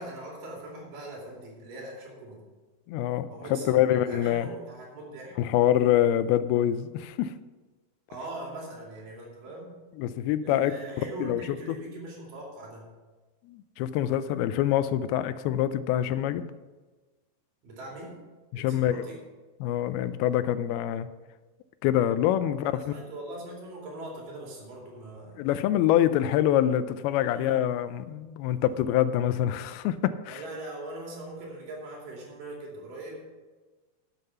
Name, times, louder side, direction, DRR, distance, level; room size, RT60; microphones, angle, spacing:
voice 1, 0.0-2.4 3.3-5.3 8.1-9.7 10.4-12.9 17.6-18.2 18.5-19.2 22.6-25.5 27.3-27.6 28.5-28.6 30.3-33.2, right 2 dB, 60° right, -2 dB, 4.2 m, -41 dB
voice 2, 2.9-4.5 5.4-7.3 10.0-10.7 11.2-11.4 11.7-11.8 13.5-16.5 18.5-19.0 19.6-21.1 21.8-22.9 25.4-30.4, left 11 dB, 85° left, 13 dB, 2.5 m, -25 dB
11.5 x 7.5 x 5.6 m, 1.3 s
omnidirectional pair, 4.4 m